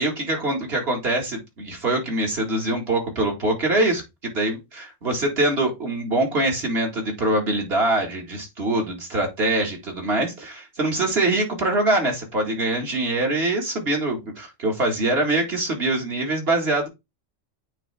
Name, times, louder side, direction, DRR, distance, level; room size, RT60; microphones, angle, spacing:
voice 1, 0.0-16.9, right 2 dB, 50° right, 1 dB, 2.1 m, -24 dB
8.9 x 3.4 x 3.3 m, 0.21 s
omnidirectional pair, 1.3 m